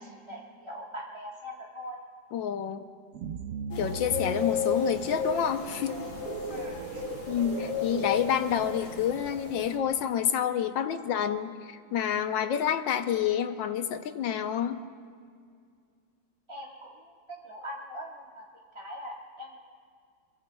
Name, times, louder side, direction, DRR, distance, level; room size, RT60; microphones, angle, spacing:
voice 1, 0.0-2.0 6.5-7.0 16.5-18.4 18.7-19.6, equal, 15° right, -3 dB, 1.3 m, -42 dB
voice 2, 2.3-2.8 3.8-6.0 7.3-14.8, left 9 dB, 80° left, 8 dB, 1.5 m, -28 dB
sound 1, 3.1-8.2, right 6 dB, 85° right, 0.7 m, -39 dB
sound 2, 3.7-9.8, left 5 dB, 60° left, 2.6 m, -34 dB
27.0 x 23.0 x 2.3 m, 2.1 s
omnidirectional pair, 2.1 m